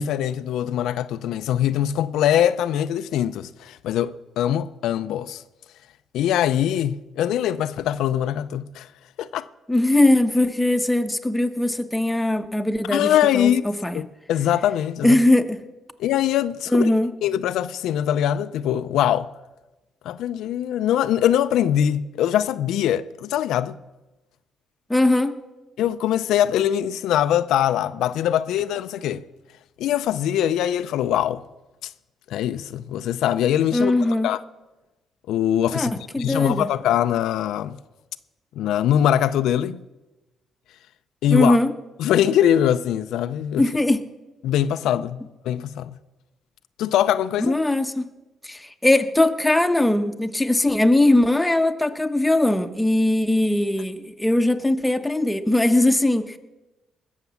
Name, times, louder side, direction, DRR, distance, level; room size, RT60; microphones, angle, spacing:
voice 1, 0.0-5.4 6.1-8.9 9.2-9.5 12.9-13.6 13.9-15.2 16.0-16.9 17.2-19.3 20.0-23.8 25.8-29.2 29.8-31.4 32.3-33.9 34.2-34.4 35.3-35.9 36.2-37.8 38.6-39.8 41.2-41.6 42.0-43.6 44.4-45.9 46.8-47.5, left 10 dB, 85° left, 0.5 m, -22 dB
voice 2, 9.7-14.0 15.0-15.6 16.7-17.1 24.9-25.3 33.7-34.3 35.7-36.7 41.3-41.7 43.6-44.0 47.4-48.1 48.4-56.4, left 1 dB, 10° left, 1.0 m, -20 dB
19.0 x 7.2 x 7.1 m
cardioid pair, 90°, 0 cm